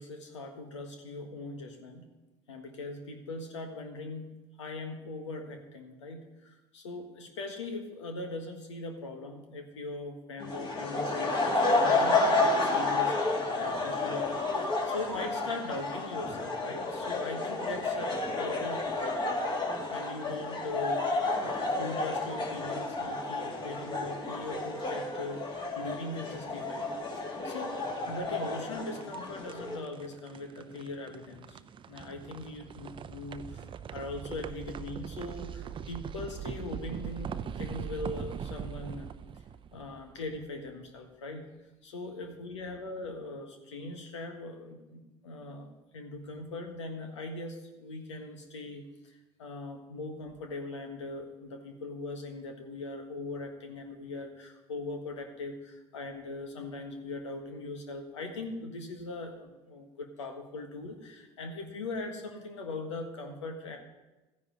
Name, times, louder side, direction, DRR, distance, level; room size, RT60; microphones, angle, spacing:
voice 1, 0.0-2.1 2.5-4.3 4.6-13.1 13.5-19.4 19.9-21.1 21.4-26.9 27.1-31.6 31.9-39.1 39.7-41.5 41.8-45.7 45.9-63.8, left 2 dB, 90° left, 4 dB, 1.5 m, -40 dB
sound 1, 10.4-29.8, left 2 dB, 30° left, 2.4 m, -31 dB
sound 2, 28.5-40.6, right 8 dB, 35° right, 0.5 m, -41 dB
14.5 x 9.9 x 3.9 m, 1.1 s
hypercardioid pair, 75°, 15 cm